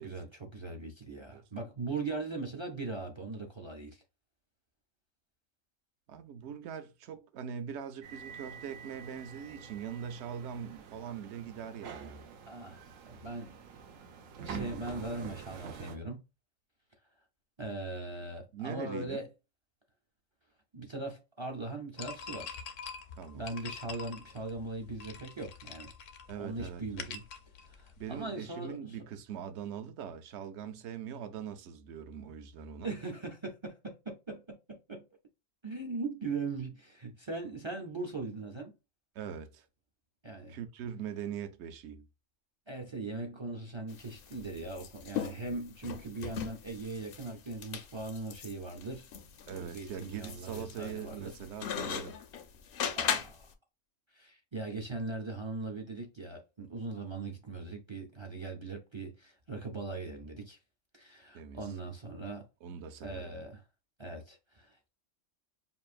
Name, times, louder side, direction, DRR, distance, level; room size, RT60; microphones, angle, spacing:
voice 1, 0.0-4.0 12.5-12.8 13.1-13.6 14.4-16.2 17.6-19.3 20.7-22.6 23.3-25.9 26.4-27.2 27.7-29.0 32.8-35.0 35.6-38.7 40.2-40.6 42.7-49.1 49.5-51.3 53.0-53.5 54.1-60.6 60.9-62.5 63.0-63.6 64.0-64.9, right 3 dB, 40° right, 0.4 m, -40 dB
voice 2, 6.1-12.3 18.5-19.3 23.2-23.4 26.3-26.8 28.0-32.9 39.1-39.7 40.5-42.1 49.5-52.2 61.3-61.7 62.6-63.3, right 8 dB, 65° right, 0.8 m, -42 dB
sound 1, 8.0-16.0, right 6 dB, 85° right, 1.1 m, -46 dB
sound 2, 22.0-28.2, left 6 dB, 75° left, 1.0 m, -45 dB
sound 3, 43.9-53.5, left 8 dB, 60° left, 0.6 m, -39 dB
5.4 x 2.5 x 2.4 m
omnidirectional pair, 1.3 m